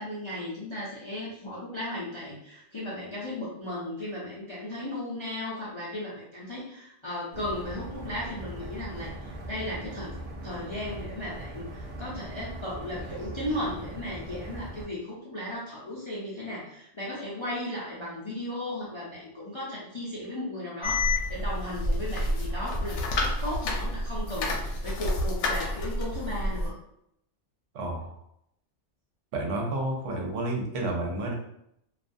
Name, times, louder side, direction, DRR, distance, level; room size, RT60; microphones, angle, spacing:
voice 1, 0.0-10.2 10.4-26.7, left 1 dB, 45° left, -7 dB, 0.4 m, -36 dB
sound 1, 7.3-14.9, right 1 dB, 60° right, 0.4 m, -40 dB
sound 2, 20.8-26.7, left 1 dB, 75° left, 0.9 m, -29 dB
voice 2, 27.7-28.1 29.3-31.3, right 2 dB, 80° right, 0 dB, 1.0 m, -30 dB
2.5 x 2.2 x 2.5 m, 0.75 s
omnidirectional pair, 1.2 m